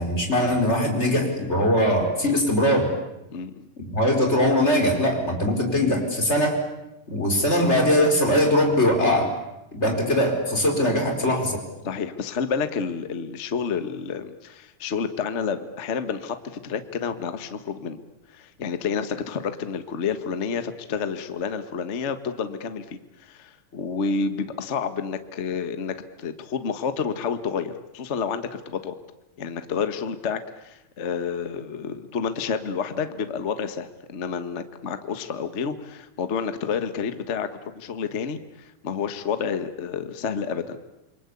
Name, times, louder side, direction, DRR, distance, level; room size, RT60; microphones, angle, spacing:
voice 1, 0.0-2.9 3.8-6.6 7.1-9.3 9.7-11.6, left 1 dB, 20° left, 3 dB, 4.8 m, -21 dB
voice 2, 3.3-3.7 11.8-18.0 18.3-29.0 29.4-37.5 37.7-40.8, left 6 dB, 55° left, 9 dB, 0.7 m, -29 dB
28.5 x 23.0 x 8.5 m, 0.91 s
omnidirectional pair, 3.8 m